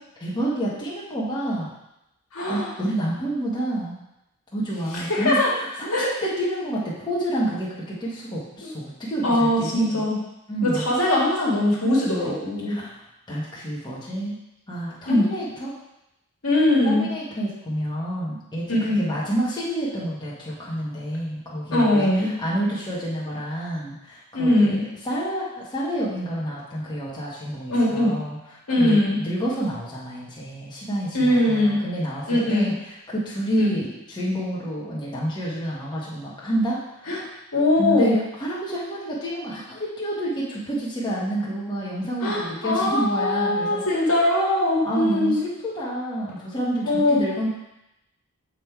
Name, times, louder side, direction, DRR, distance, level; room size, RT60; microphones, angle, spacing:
voice 1, 0.2-1.7 2.5-4.0 4.5-10.1 10.5-10.8 12.7-13.0 13.3-14.4 14.7-15.7 16.8-24.8 25.0-28.4 28.8-37.3 37.8-43.8 44.8-47.5, right 1 dB, 20° left, -7 dB, 1.5 m, -29 dB
voice 2, 2.3-2.7 4.9-5.5 5.9-6.0 8.6-8.7 9.2-10.2 10.6-12.8 15.1-15.2 16.4-17.1 18.7-19.0 21.7-22.3 24.3-24.8 27.7-28.1 28.7-29.2 31.1-31.8 32.3-32.7 33.6-33.7 37.1-37.2 37.5-38.1 42.2-45.4 46.8-47.2, left 1 dB, 70° left, -4 dB, 1.8 m, -21 dB
7.4 x 3.8 x 4.6 m, 0.89 s
head